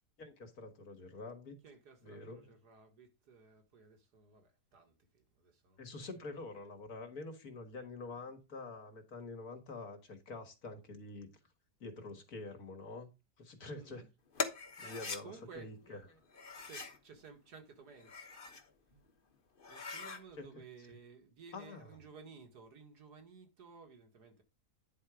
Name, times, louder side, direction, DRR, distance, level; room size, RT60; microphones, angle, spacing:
voice 1, 0.2-1.6 2.0-2.5 5.8-11.3 11.8-13.1 13.4-14.1 14.8-16.2 20.4-20.5 21.5-22.0, left 3 dB, 65° left, 2.2 m, -47 dB
voice 2, 1.6-6.1 8.2-8.3 13.7-14.1 14.8-16.1 16.6-18.3 18.9-19.0 19.7-24.4, right 5 dB, 85° right, 2.3 m, -56 dB
sound 1, 14.3-15.2 16.3-17.0 17.9-18.7 19.1-19.2 19.6-20.2, left 4 dB, 35° left, 1.2 m, -41 dB
10.0 x 4.5 x 4.9 m
omnidirectional pair, 1.7 m